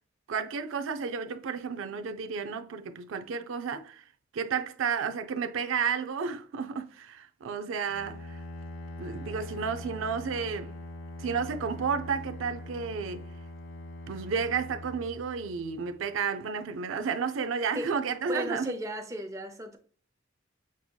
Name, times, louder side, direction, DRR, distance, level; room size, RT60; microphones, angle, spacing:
voice 1, 0.3-4.0 4.3-8.4 9.0-10.8 11.2-13.3 14.1-18.7, right 6 dB, 85° right, 0.4 m, -32 dB
Bowed string instrument, 7.9-15.9, left 1 dB, 85° left, 0.8 m, -42 dB
voice 2, 18.3-19.8, right 1 dB, 15° right, 0.6 m, -35 dB
6.0 x 2.8 x 2.2 m
head